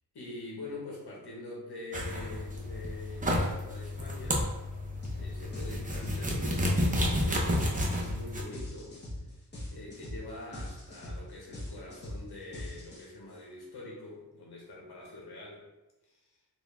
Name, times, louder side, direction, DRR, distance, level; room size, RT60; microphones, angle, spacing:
voice 1, 0.1-4.5 5.2-9.0 9.7-15.6 16.0-16.4, left 2 dB, 75° left, -3 dB, 1.4 m, -45 dB
sound 1, 1.9-8.4, equal, 20° right, 0.6 m, -31 dB
sound 2, 5.0-5.2 5.5-13.3, left 1 dB, 25° left, 1.3 m, -41 dB
4.4 x 2.7 x 3.4 m, 0.99 s
wide cardioid pair, 150°, 38 cm